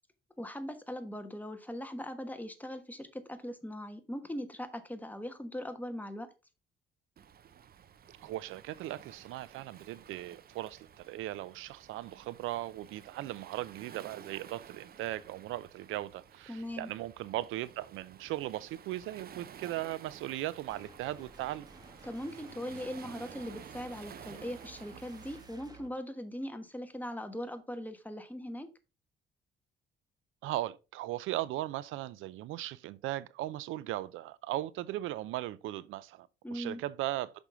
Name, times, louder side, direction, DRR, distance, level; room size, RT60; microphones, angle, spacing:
voice 1, 0.4-6.3 16.5-16.9 22.0-28.7 36.4-36.8, equal, 10° left, 1.2 m, -40 dB
Waves surf, 7.2-25.5, right 8 dB, 50° right, 0.7 m, -53 dB
voice 2, 8.2-21.7 30.4-37.3, right 15 dB, 90° right, 0.5 m, -38 dB
sound 1, 20.7-25.9, right 3 dB, 20° right, 1.4 m, -54 dB
6.2 x 5.3 x 4.2 m
cardioid pair, 90°, 20 cm